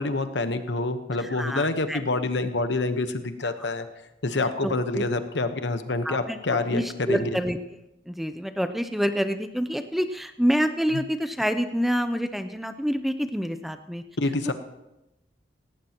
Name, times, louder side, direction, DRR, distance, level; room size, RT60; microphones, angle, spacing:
voice 1, 0.0-3.8 4.2-7.3 10.9-11.0 14.2-14.5, left 2 dB, 75° left, 9 dB, 1.1 m, -27 dB
voice 2, 1.2-2.0 4.6-5.0 6.0-6.4 6.7-7.6 8.1-14.0, equal, ahead, 9 dB, 0.5 m, -27 dB
17.5 x 17.0 x 3.0 m, 0.93 s
head